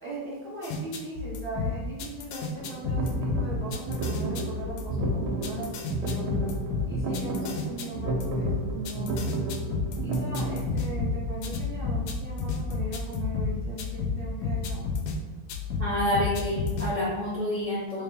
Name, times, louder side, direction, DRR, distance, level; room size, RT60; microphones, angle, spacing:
voice 1, 0.0-6.3 6.9-9.2 10.0-14.8 17.9-18.0, right 1 dB, 10° left, -8 dB, 0.8 m, -39 dB
sound 1, 0.6-15.2 15.5-16.9, left 4 dB, 80° left, 1.1 m, -31 dB
sound 2, 2.6-10.7, right 1 dB, 85° right, 1.2 m, -31 dB
voice 2, 15.8-18.0, left 1 dB, 45° right, -7 dB, 0.4 m, -28 dB
3.2 x 2.8 x 3.5 m, 1.2 s
omnidirectional pair, 1.8 m